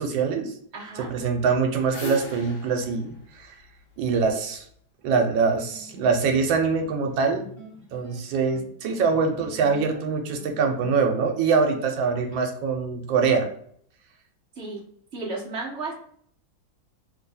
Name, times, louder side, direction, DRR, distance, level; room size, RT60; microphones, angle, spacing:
voice 1, 0.0-0.5 1.0-3.6 4.0-4.6 5.0-7.5 7.9-13.5, right 5 dB, 80° right, 3 dB, 1.4 m, -24 dB
voice 2, 0.7-1.1 14.6-14.8 15.1-15.9, right 3 dB, 55° right, -2 dB, 0.8 m, -33 dB
sound 1, 1.4-4.6, left 2 dB, 65° left, 1.6 m, -39 dB
sound 2, 5.4-12.4, equal, 20° right, 1.0 m, -46 dB
3.4 x 2.3 x 4.0 m, 0.62 s
omnidirectional pair, 2.1 m